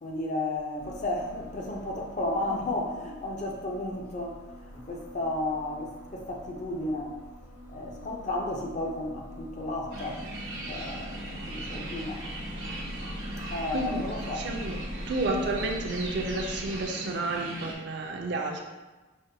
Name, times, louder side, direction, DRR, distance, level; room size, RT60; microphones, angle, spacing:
voice 1, 0.0-7.1 7.7-10.2 10.7-12.2 13.5-14.4, left 2 dB, 35° left, 0 dB, 0.4 m, -33 dB
sound 1, 0.8-16.9, equal, 60° left, 1.1 m, -43 dB
sound 2, 9.9-17.7, right 1 dB, 70° right, 0.9 m, -39 dB
voice 2, 13.7-14.0 14.3-14.8 15.1-18.6, right 2 dB, 55° right, 1 dB, 0.4 m, -31 dB
5.1 x 2.1 x 2.7 m, 1.2 s
head